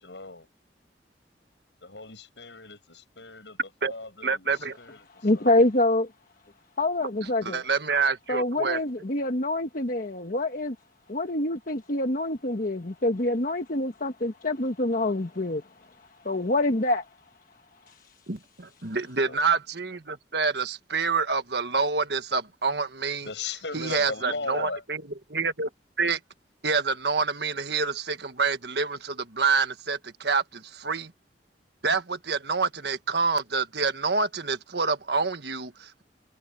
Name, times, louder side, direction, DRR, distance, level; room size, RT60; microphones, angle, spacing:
voice 1, 0.0-0.5 1.8-5.5 19.1-19.4 23.2-24.8, left 3 dB, 80° left, 8.0 m, -38 dB
voice 2, 4.2-4.8 7.4-8.8 18.3-23.3 23.7-25.0 25.3-25.7 26.0-26.2 26.6-31.1 31.8-36.0, right 4 dB, 70° right, 1.5 m, -27 dB
voice 3, 5.2-6.1 6.8-7.6 8.3-10.8 11.1-17.1 17.9-18.0, left 2 dB, 50° left, 1.3 m, -26 dB
head